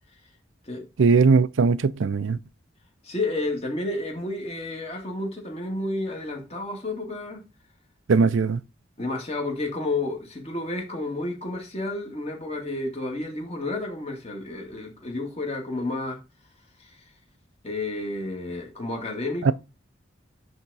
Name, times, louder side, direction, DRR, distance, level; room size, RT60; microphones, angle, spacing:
voice 1, 1.0-2.4 8.1-8.6 19.4-19.5, right 4 dB, 85° right, 0.5 m, -19 dB
voice 2, 3.0-7.4 9.0-16.2 16.8-17.0 17.6-19.5, left 2 dB, 30° left, 2.0 m, -31 dB
10.5 x 3.6 x 4.0 m
head